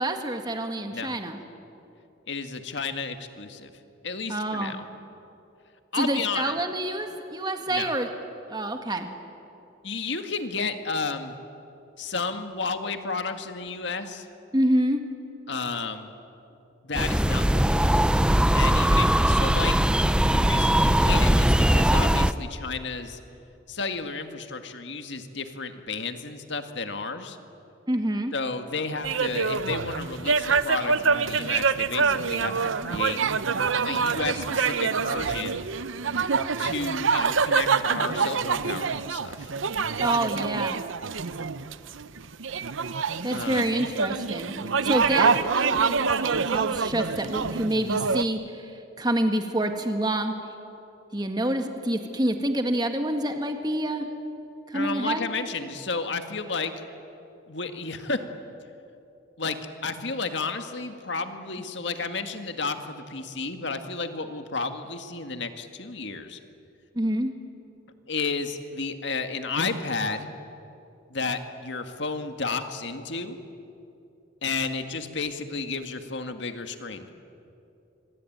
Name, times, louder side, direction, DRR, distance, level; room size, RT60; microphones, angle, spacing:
voice 1, 0.0-1.4 4.3-4.7 5.9-8.1 8.5-9.1 14.5-15.0 27.9-28.3 40.0-40.8 43.2-44.5 44.8-48.7 49.0-50.3 51.1-54.1 54.7-55.3 66.9-67.3, right 1 dB, 20° right, 5 dB, 1.8 m, -27 dB
voice 2, 2.3-3.7 4.0-4.8 5.9-6.6 7.7-7.9 9.8-11.3 12.0-14.3 15.5-16.1 16.8-18.0 18.5-19.9 20.3-23.2 23.7-27.4 28.3-33.2 33.9-35.6 36.6-39.5 43.3-43.7 54.7-56.8 57.5-58.2 59.4-59.6 59.8-66.4 68.1-70.3 71.1-73.4 74.4-77.1, left 4 dB, 65° left, 7 dB, 1.9 m, -32 dB
sound 1, 16.9-22.3, right 1 dB, 5° right, 0.6 m, -20 dB
sound 2, 29.0-48.2, right 5 dB, 80° right, 0.8 m, -26 dB
26.0 x 24.0 x 9.3 m, 2.8 s
head